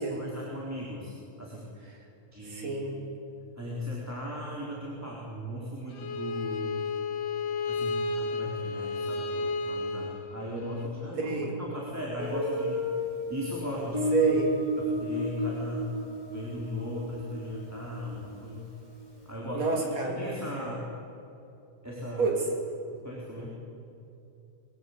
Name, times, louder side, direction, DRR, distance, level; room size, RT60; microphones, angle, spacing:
voice 1, 0.1-1.7 2.3-2.9 3.6-6.8 7.7-12.9 13.3-14.1 14.8-15.9 16.3-18.6 19.3-20.8 21.8-22.3 22.9-23.5, equal, 5° right, -4 dB, 3.8 m, -37 dB
voice 2, 2.4-3.0 11.2-11.5 14.1-14.5 19.5-20.4 22.2-22.4 23.4-23.5, right 4 dB, 60° right, 0 dB, 4.3 m, -28 dB
Bowed string instrument, 5.9-10.9, left 3 dB, 85° left, 3.0 m, -32 dB
Guitar, 12.2-18.9, left 1 dB, 15° left, 6.1 m, -33 dB
24.0 x 22.5 x 8.7 m, 2.8 s
omnidirectional pair, 3.4 m